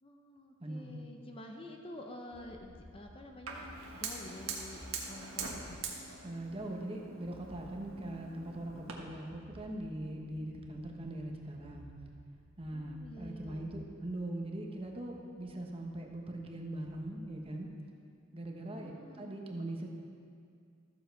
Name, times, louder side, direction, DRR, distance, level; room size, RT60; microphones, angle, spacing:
voice 1, 0.0-5.8 12.7-13.7 18.7-19.4, left 1 dB, 25° left, 2 dB, 0.7 m, -49 dB
voice 2, 0.6-0.9 6.2-11.9 12.6-17.7 18.3-19.9, right 1 dB, 30° right, 1 dB, 1.0 m, -41 dB
sound 1, 2.3-17.6, equal, 70° left, 1.7 m, -57 dB
Fire, 3.5-8.9, right 5 dB, 80° right, 1.4 m, -43 dB
14.0 x 7.4 x 4.6 m, 2.3 s
head